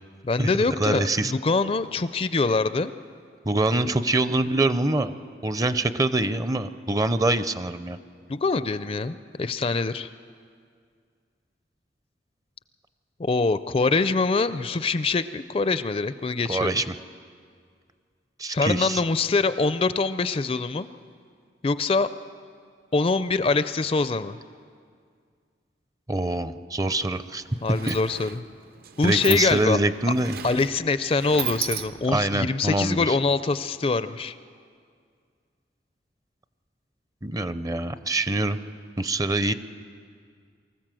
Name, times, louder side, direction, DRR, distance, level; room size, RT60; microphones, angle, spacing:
voice 1, 0.2-2.9 8.3-10.1 13.2-16.7 18.5-20.9 21.6-22.1 22.9-24.4 27.6-28.4 29.0-29.8 30.4-34.4, left 3 dB, 35° left, 13 dB, 0.4 m, -24 dB
voice 2, 0.8-1.3 3.5-5.1 5.4-8.0 16.5-16.9 18.4-19.0 26.1-27.4 27.9-28.0 29.0-30.4 32.1-33.2 37.2-38.6 39.0-39.5, right 2 dB, 20° right, 12 dB, 0.5 m, -24 dB
Sliding door, 27.0-27.1 27.4-32.3, right 9 dB, 55° right, 0.7 m, -35 dB
24.0 x 14.5 x 7.6 m, 2.1 s
head